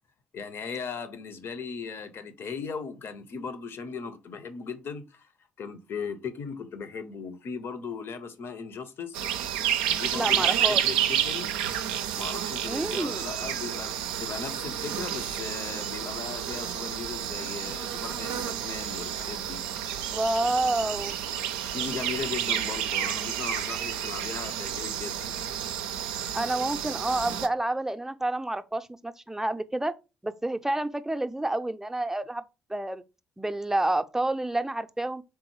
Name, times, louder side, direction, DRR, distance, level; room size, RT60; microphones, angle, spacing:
voice 1, 0.3-5.3 5.6-9.2 9.9-11.5 12.1-19.6 21.7-25.4, left 5 dB, 50° left, 0.7 m, -38 dB
sound 1, 9.1-27.5, right 10 dB, 75° right, 0.4 m, -30 dB
voice 2, 10.1-10.8 12.7-13.2 20.1-21.2 26.3-29.9 30.2-32.4 32.7-33.0 33.4-35.2, right 1 dB, 10° right, 0.5 m, -29 dB
4.6 x 3.8 x 3.0 m
figure-of-eight pair, 45°, 5 cm